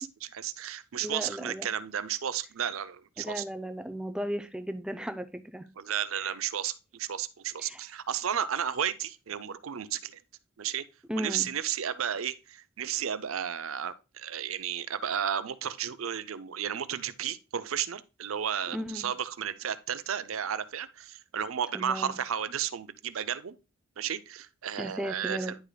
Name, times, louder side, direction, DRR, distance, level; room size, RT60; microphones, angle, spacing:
voice 1, 0.0-3.4 5.8-10.2 10.6-10.8 11.2-23.6 24.0-25.6, right 9 dB, 85° right, 0.5 m, -33 dB
voice 2, 1.0-1.7 3.2-5.6 6.2-6.3 7.6-7.8 11.1-11.5 18.7-19.1 21.7-22.2 24.8-25.6, equal, 5° right, 0.5 m, -35 dB
10.0 x 5.0 x 2.2 m
head